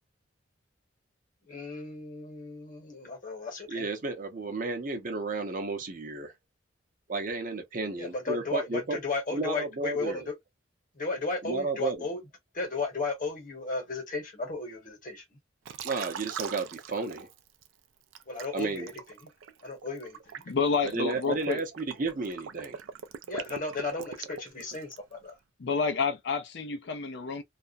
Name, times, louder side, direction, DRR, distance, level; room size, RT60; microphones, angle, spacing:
voice 1, 1.4-3.9 7.9-10.3 10.9-12.2 12.5-15.4 18.3-19.3 19.6-20.4 23.3-25.4, left 3 dB, 45° left, 1.1 m, -35 dB
voice 2, 3.7-6.3 7.1-9.0 9.3-10.3 11.4-12.0 15.8-17.3 18.5-18.9 20.9-22.8, right 3 dB, 45° right, 0.6 m, -32 dB
Liquid, 15.7-17.7 18.1-25.1, right 7 dB, 80° right, 0.4 m, -42 dB
voice 3, 20.5-21.6 25.6-27.4, left 5 dB, 60° left, 0.5 m, -29 dB
2.4 x 2.1 x 2.5 m
head